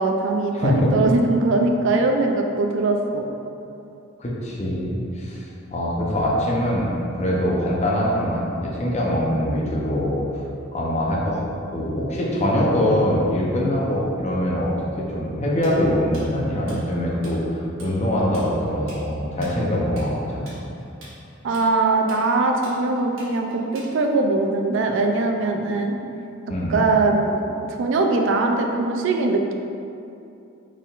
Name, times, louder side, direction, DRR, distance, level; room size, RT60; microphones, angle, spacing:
voice 1, 0.0-3.2 21.4-26.0 26.7-29.5, right 3 dB, 60° right, 3 dB, 0.4 m, -21 dB
voice 2, 0.5-0.9 4.2-5.4 5.7-6.9 7.2-10.2 10.7-11.4 11.7-20.6 26.5-26.8, equal, 35° left, -4 dB, 0.6 m, -23 dB
Tools, 15.6-17.3 17.6-17.9 18.2-24.2, right 1 dB, 80° right, 1.2 m, -44 dB
4.3 x 3.6 x 2.4 m, 2.6 s
head